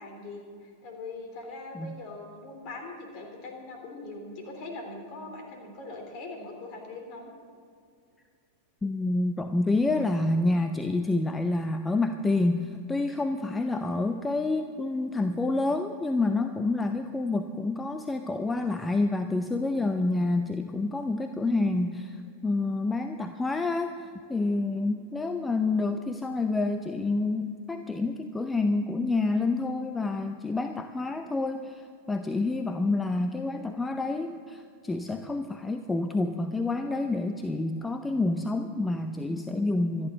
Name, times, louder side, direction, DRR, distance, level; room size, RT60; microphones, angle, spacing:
voice 1, 0.0-7.3, left 2 dB, 40° left, 2 dB, 3.5 m, -41 dB
voice 2, 8.8-40.1, left 2 dB, 10° left, 8 dB, 0.6 m, -28 dB
25.5 x 10.5 x 3.9 m, 2.3 s
figure-of-eight pair, 90°, 0 cm